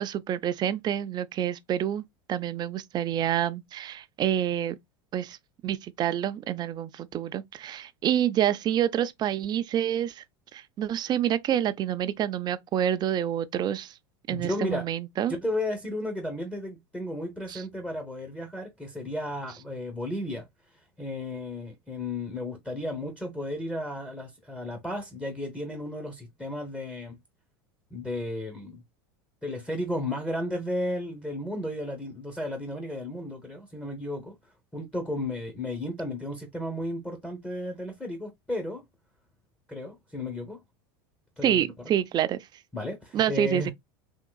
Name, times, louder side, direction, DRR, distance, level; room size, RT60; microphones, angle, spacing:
voice 1, 0.0-2.0 2.3-4.8 5.1-5.4 5.6-10.2 10.5-13.9 14.3-15.3 17.5-17.6 41.4-42.5 43.1-43.7, right 10 dB, 35° right, 0.5 m, -27 dB
voice 2, 14.3-14.9 15.4-20.4 21.0-27.2 27.9-28.8 29.4-34.4 34.7-38.8 39.7-40.6 41.4-41.6 42.7-43.7, left 1 dB, 10° left, 0.9 m, -33 dB
3.6 x 2.8 x 2.2 m
hypercardioid pair, 95°, 12 cm